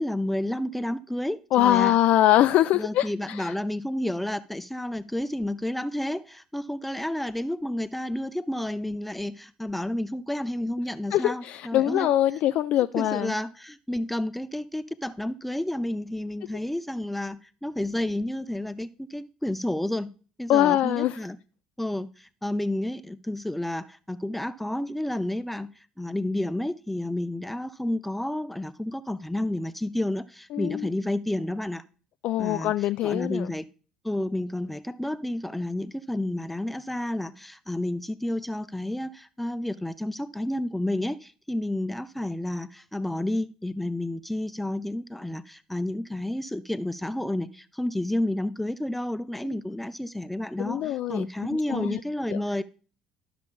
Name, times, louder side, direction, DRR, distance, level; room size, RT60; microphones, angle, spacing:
voice 1, 0.0-2.0 2.7-12.1 13.0-20.1 20.4-21.4 21.8-31.8 32.4-33.6 34.0-52.6, left 1 dB, 5° left, 13 dB, 0.5 m, -30 dB
voice 2, 1.5-3.5 11.1-13.3 20.5-21.2 30.5-30.9 32.2-33.5 50.6-51.3 51.7-52.0 52.3-52.4, left 13 dB, 55° left, 12 dB, 0.3 m, -23 dB
12.5 x 6.8 x 2.3 m, 0.37 s
figure-of-eight pair, 60°, 3 cm